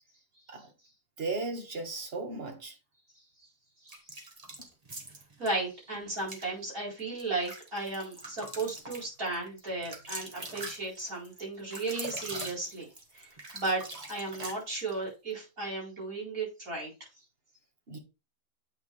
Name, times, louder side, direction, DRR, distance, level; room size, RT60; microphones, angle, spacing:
voice 1, 1.2-2.7 17.9-18.0, right 3 dB, 45° right, 1.6 m, -36 dB
sound 1, 3.9-5.5 6.2-6.5 7.0-15.0, right 2 dB, 25° right, 1.4 m, -43 dB
voice 2, 5.4-12.9 13.1-13.3 13.5-16.9, right 2 dB, 70° right, 4.8 m, -35 dB
8.6 x 4.6 x 3.3 m
omnidirectional pair, 1.5 m